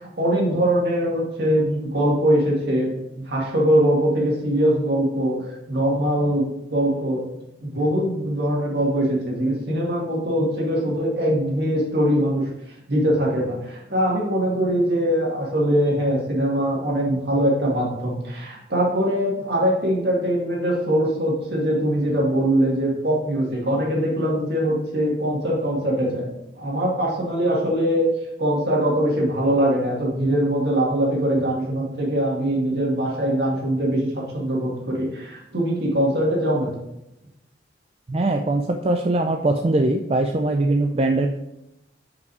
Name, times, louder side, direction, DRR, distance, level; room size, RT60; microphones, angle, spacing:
voice 1, 0.0-7.2 7.6-12.5 12.9-26.3 26.6-28.1 28.4-36.7, equal, 60° right, -3 dB, 2.1 m, -22 dB
voice 2, 38.1-41.3, right 2 dB, 30° right, 3 dB, 0.4 m, -21 dB
5.4 x 5.4 x 4.7 m, 0.87 s
head